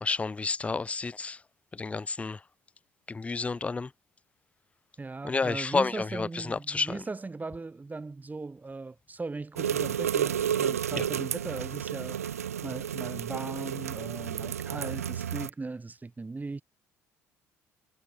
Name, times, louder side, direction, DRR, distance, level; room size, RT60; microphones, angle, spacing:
voice 1, 0.0-1.4 1.7-2.4 3.1-3.9 5.2-7.0 10.9-11.0, left 4 dB, 15° left, 0.4 m, -30 dB
voice 2, 5.0-16.6, right 3 dB, 20° right, 4.0 m, -38 dB
sound 1, 9.6-15.5, right 9 dB, 85° right, 0.9 m, -31 dB
figure-of-eight pair, 55°, 8 cm